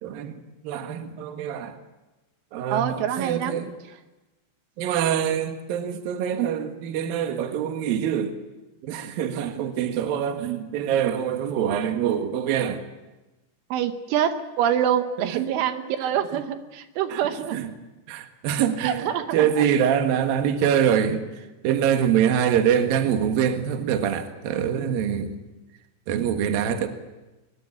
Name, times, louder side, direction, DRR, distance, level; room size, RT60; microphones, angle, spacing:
voice 1, 0.0-1.8 2.5-3.7 4.8-8.3 8.8-12.8 15.2-15.5 17.1-17.2 17.5-17.7 18.1-25.4 26.1-26.9, right 9 dB, 60° right, 6 dB, 2.8 m, -25 dB
voice 2, 2.7-3.6 13.7-17.6 18.8-19.2 19.6-19.7, right 9 dB, 80° right, 8 dB, 3.5 m, -25 dB
22.0 x 21.5 x 8.6 m, 1.1 s
omnidirectional pair, 5.6 m